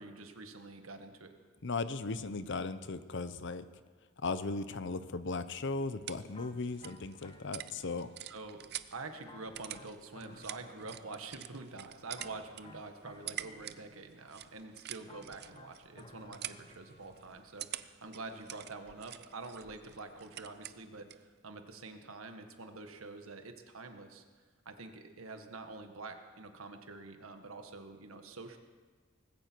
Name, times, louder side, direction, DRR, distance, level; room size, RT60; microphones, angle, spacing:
voice 1, 0.0-1.3 8.3-8.6 8.9-21.1 21.4-24.2 24.6-28.6, right 3 dB, 80° right, 6 dB, 1.5 m, -46 dB
voice 2, 1.6-3.6 4.2-8.1, left 3 dB, 60° left, 13 dB, 0.7 m, -37 dB
sound 1, 5.6-21.3, right 12 dB, 50° right, 0.5 m, -48 dB
sound 2, 6.3-8.4 9.2-11.6 12.1-14.2 15.1-17.4, left 2 dB, 25° left, 0.8 m, -57 dB
19.5 x 16.0 x 4.6 m, 1.5 s
head